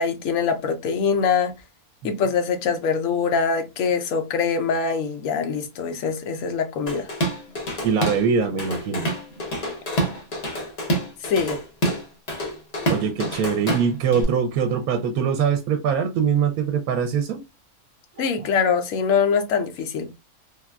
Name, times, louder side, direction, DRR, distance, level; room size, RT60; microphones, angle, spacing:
voice 1, 0.0-1.5 2.0-7.1 11.2-11.6 18.2-20.1, left 6 dB, 70° left, 1.0 m, -23 dB
Drum kit / Drum, 6.9-8.3 8.6-14.2, right 1 dB, 35° left, 0.7 m, -27 dB
voice 2, 7.8-9.1 12.9-17.4 18.2-18.5, right 6 dB, 80° right, 1.0 m, -23 dB
3.6 x 2.3 x 2.2 m
omnidirectional pair, 1.5 m